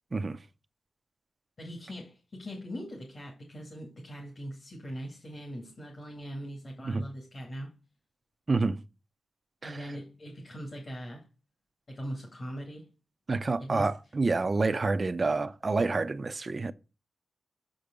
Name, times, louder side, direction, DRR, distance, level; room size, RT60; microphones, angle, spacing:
voice 1, 1.6-7.7 9.6-11.2 11.9-12.9 13.6-13.9, equal, 40° left, 2.4 m, -41 dB
voice 2, 8.5-8.8 9.6-9.9 13.3-16.7, right 3 dB, 30° right, 0.5 m, -28 dB
7.0 x 5.1 x 6.7 m
wide cardioid pair, 150°, 0 cm